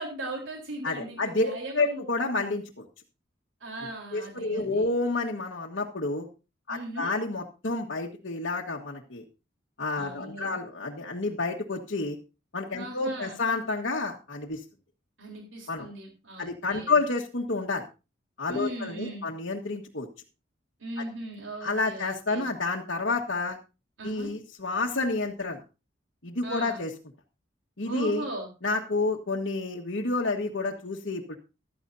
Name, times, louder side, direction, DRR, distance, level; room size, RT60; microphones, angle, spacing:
voice 1, 0.0-2.0 3.6-4.9 6.7-7.1 10.0-10.6 12.8-13.4 15.2-16.9 18.5-19.3 20.8-22.4 24.0-24.3 26.4-26.8 27.8-28.5, right 1 dB, 75° right, 1 dB, 3.8 m, -38 dB
voice 2, 0.8-2.8 4.1-6.3 6.7-9.2 9.8-12.2 12.5-14.6 15.7-15.9 16.4-17.8 18.4-20.1 21.0-21.1 21.6-23.6 24.0-25.6 26.2-26.9 27.8-28.3 28.6-31.4, left 3 dB, 65° left, -2 dB, 1.6 m, -29 dB
15.0 x 12.5 x 2.7 m, 0.30 s
head